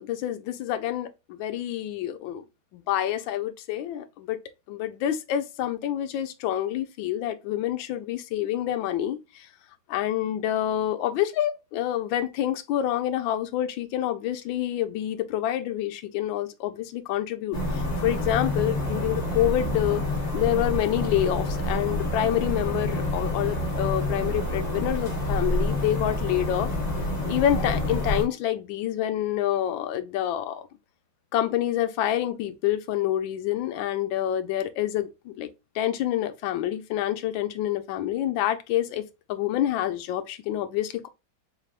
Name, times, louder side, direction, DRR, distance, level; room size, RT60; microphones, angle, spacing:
voice 1, 0.0-2.4 2.7-4.4 4.7-9.5 9.9-20.0 20.3-26.7 27.3-30.7 31.3-35.5 35.7-39.0 39.3-41.1, left 12 dB, 75° left, 1.4 m, -27 dB
sound 1, 17.5-28.2, left 1 dB, 25° left, 1.2 m, -28 dB
4.7 x 3.3 x 2.4 m
omnidirectional pair, 2.2 m